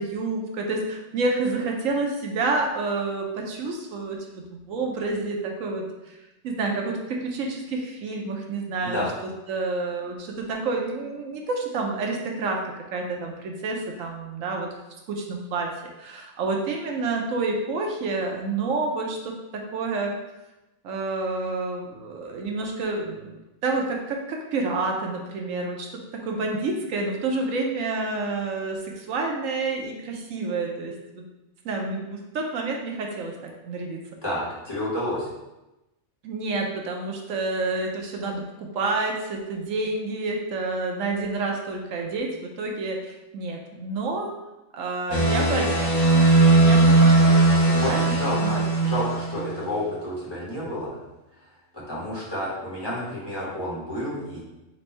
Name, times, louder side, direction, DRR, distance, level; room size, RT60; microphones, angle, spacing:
voice 1, 0.0-6.2 6.4-14.7 15.1-15.7 16.0-20.2 20.8-23.3 23.6-25.9 26.2-31.2 31.6-34.0 36.2-44.3 44.7-46.0 46.5-48.0 48.4-49.0, right 3 dB, 80° right, 1 dB, 1.0 m, -29 dB
voice 2, 34.2-35.3 46.6-46.9 47.7-51.0 51.7-54.4, left 1 dB, 20° left, -9 dB, 1.4 m, -30 dB
sound 1, 45.1-49.5, right 2 dB, 65° left, 1.2 m, -18 dB
4.5 x 2.6 x 4.2 m, 0.99 s
omnidirectional pair, 1.4 m